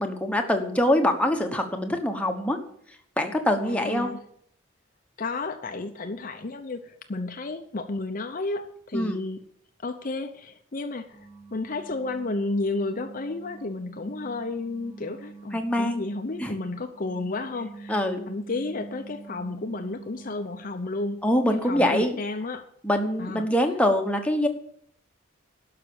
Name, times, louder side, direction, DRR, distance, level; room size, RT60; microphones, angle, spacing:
voice 1, 0.0-2.6 3.2-4.1 8.9-9.2 15.5-16.0 16.4-16.5 17.9-18.2 21.2-22.2 22.8-24.5, left 1 dB, 5° left, 3 dB, 1.2 m, -24 dB
voice 2, 3.6-4.2 5.2-9.4 9.8-21.2 21.6-22.7 23.2-23.5, left 2 dB, 40° left, 7 dB, 0.7 m, -32 dB
sound 1, 11.1-20.8, right 4 dB, 15° right, 1.5 m, -45 dB
12.0 x 5.9 x 8.6 m, 0.65 s
head